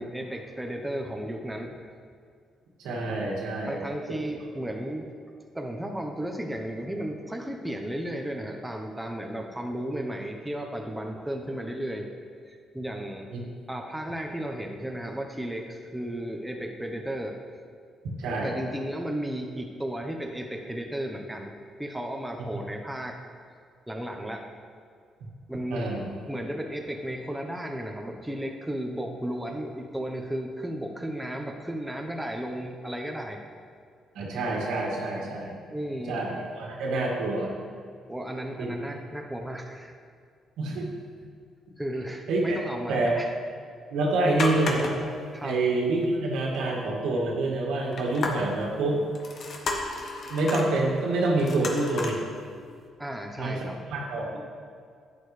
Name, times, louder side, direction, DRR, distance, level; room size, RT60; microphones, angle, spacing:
voice 1, 0.0-1.9 3.7-5.1 5.5-12.1 12.5-13.3 13.7-17.4 18.4-21.5 21.8-23.2 23.9-24.5 25.5-25.9 26.3-33.4 35.7-36.2 38.1-40.0 41.8-43.3 45.3-45.6 51.5-51.6 53.0-53.8, right 1 dB, 5° right, 2 dB, 1.0 m, -34 dB
voice 2, 2.8-3.8 13.3-13.4 18.2-18.5 25.7-26.1 34.1-35.6 36.1-37.5 38.6-38.7 40.6-40.9 42.3-42.6 42.9-43.2 43.9-44.9 45.4-49.0 50.3-52.2 53.4-53.6 53.9-54.4, right 2 dB, 90° right, -2 dB, 2.1 m, -27 dB
sound 1, 44.3-45.2 45.5-45.6 46.0-46.1 47.9-48.7 49.1-50.7 51.4-52.2 52.7-52.8, left 2 dB, 55° left, 1.3 m, -32 dB
11.5 x 8.8 x 3.3 m, 2.2 s
cardioid pair, 90°, 0 cm